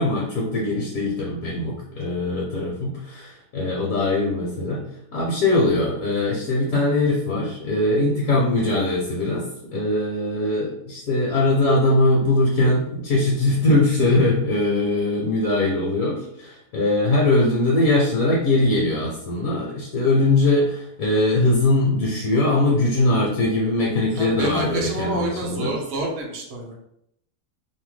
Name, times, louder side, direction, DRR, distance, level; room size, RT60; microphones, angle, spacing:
voice 1, 0.0-4.8 5.1-25.7, left 2 dB, 65° left, -3 dB, 1.0 m, -21 dB
voice 2, 24.1-26.7, right 2 dB, 60° right, 0 dB, 0.7 m, -28 dB
2.7 x 2.2 x 3.1 m, 0.75 s
omnidirectional pair, 1.7 m